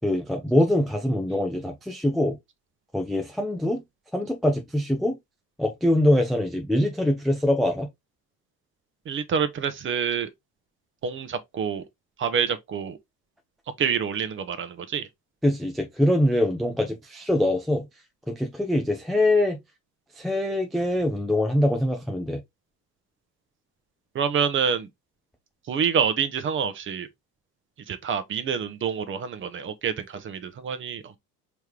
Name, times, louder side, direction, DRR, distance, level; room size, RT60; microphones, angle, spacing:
voice 1, 0.0-2.4 2.9-3.8 4.1-5.2 5.6-7.9 15.4-17.8 18.3-19.6 20.2-22.4, left 1 dB, ahead, 0.4 m, -23 dB
voice 2, 9.1-10.3 11.0-11.8 12.2-13.0 13.8-15.1 24.1-24.9 25.7-27.1 27.9-31.2, right 7 dB, 25° right, 0.8 m, -27 dB
4.6 x 3.1 x 3.2 m
figure-of-eight pair, 75°, 49 cm